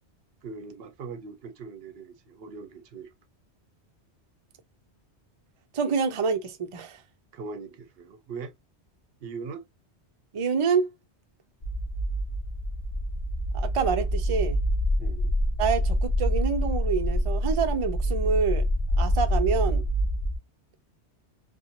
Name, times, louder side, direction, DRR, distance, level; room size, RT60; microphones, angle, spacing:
voice 1, 0.4-3.1 7.3-8.5 9.2-9.7 15.0-15.3, right 4 dB, 65° right, 0.8 m, -40 dB
voice 2, 5.7-7.0 10.3-10.9 13.5-14.6 15.6-18.6 19.0-19.8, right 6 dB, 50° right, 0.4 m, -27 dB
sound 1, 11.6-20.4, equal, 45° left, 0.4 m, -26 dB
2.8 x 2.5 x 2.5 m
omnidirectional pair, 1.2 m